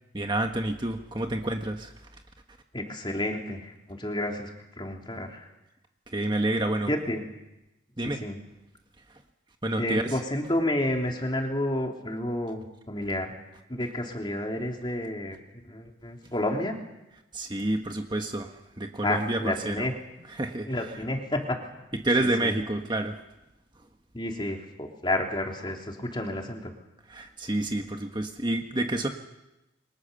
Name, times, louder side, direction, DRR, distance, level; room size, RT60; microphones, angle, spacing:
voice 1, 0.1-1.9 6.1-6.9 8.0-8.2 9.6-10.0 17.3-18.5 18.8-19.4 19.6-19.9 20.4-20.7 22.0-23.2 27.1-29.1, right 1 dB, 25° right, 4 dB, 1.5 m, -28 dB
voice 2, 2.7-4.5 4.8-5.4 6.9-7.3 8.0-8.4 9.8-13.4 13.7-15.4 15.6-16.8 19.0-19.9 20.7-21.6 22.2-22.5 24.1-26.7, left 1 dB, 25° left, 2 dB, 3.3 m, -30 dB
28.0 x 25.0 x 7.0 m, 0.95 s
head